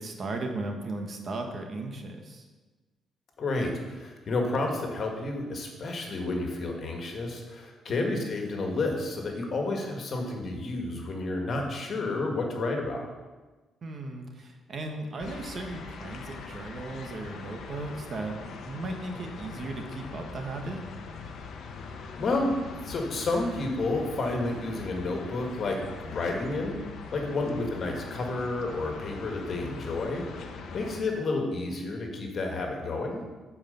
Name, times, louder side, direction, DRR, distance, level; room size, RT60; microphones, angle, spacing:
voice 1, 0.0-2.5 7.9-8.2 13.8-20.8 27.3-27.6, right 2 dB, 45° right, 4 dB, 1.3 m, -36 dB
voice 2, 3.4-13.1 22.2-22.5 22.9-26.8 27.1-33.2, left 2 dB, 50° left, 2 dB, 1.9 m, -30 dB
sound 1, 15.2-31.0, left 4 dB, 70° left, 0.9 m, -42 dB
8.9 x 5.0 x 6.8 m, 1.3 s
cardioid pair, 90°, 0 cm